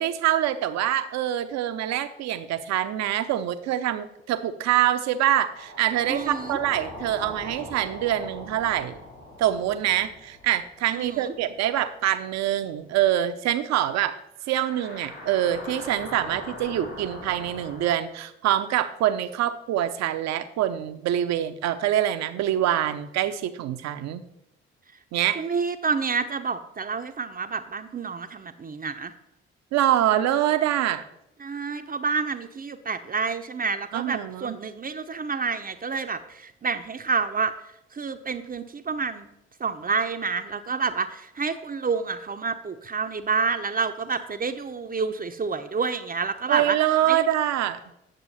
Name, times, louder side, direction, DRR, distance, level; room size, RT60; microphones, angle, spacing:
voice 1, 0.0-9.0 9.4-14.2 14.5-24.2 25.1-25.4 29.7-31.0 33.9-34.6 46.5-47.8, right 12 dB, 65° right, 11 dB, 0.7 m, -25 dB
sound 1, 5.4-12.0 12.3-12.4 14.4-17.9, left 1 dB, 75° left, 3.7 m, -41 dB
voice 2, 6.1-6.6 10.9-11.3 25.4-29.1 31.4-37.5 37.9-39.3 39.6-46.8 47.1-47.2, right 5 dB, 30° right, 7 dB, 0.7 m, -28 dB
9.0 x 6.8 x 4.1 m, 0.82 s
hypercardioid pair, 45°, 29 cm